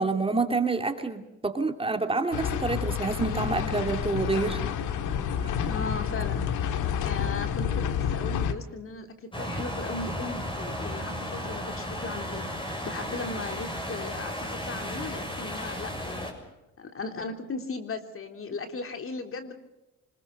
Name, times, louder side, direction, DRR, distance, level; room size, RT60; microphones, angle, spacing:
voice 1, 0.0-4.6 5.4-5.5, right 3 dB, 20° right, 6 dB, 2.7 m, -28 dB
sound 1, 2.3-8.5, left 8 dB, 85° left, 1.8 m, -29 dB
voice 2, 5.7-6.4 7.0-16.4 16.8-19.5, left 3 dB, 45° left, 6 dB, 3.4 m, -37 dB
sound 2, 9.3-16.3, equal, 15° left, 6.9 m, -34 dB
26.0 x 21.0 x 6.6 m, 0.98 s
cardioid pair, 90°, 30 cm